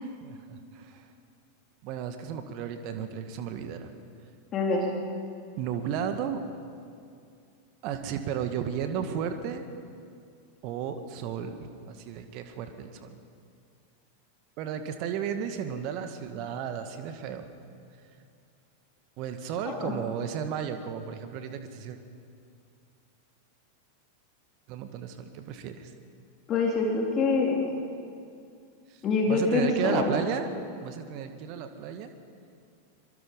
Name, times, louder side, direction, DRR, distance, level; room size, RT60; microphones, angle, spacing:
voice 1, 0.0-1.0 1.8-3.9 5.6-6.4 7.8-9.6 10.6-13.2 14.6-17.4 19.2-22.0 24.7-25.9 28.9-29.0 29.3-30.5 30.8-32.1, right 8 dB, 40° right, 7 dB, 1.6 m, -34 dB
voice 2, 4.5-4.9 19.6-19.9 26.5-27.8 29.0-30.1, left 4 dB, 30° left, -1 dB, 3.3 m, -25 dB
25.0 x 23.5 x 5.4 m, 2.3 s
figure-of-eight pair, 90°, 0 cm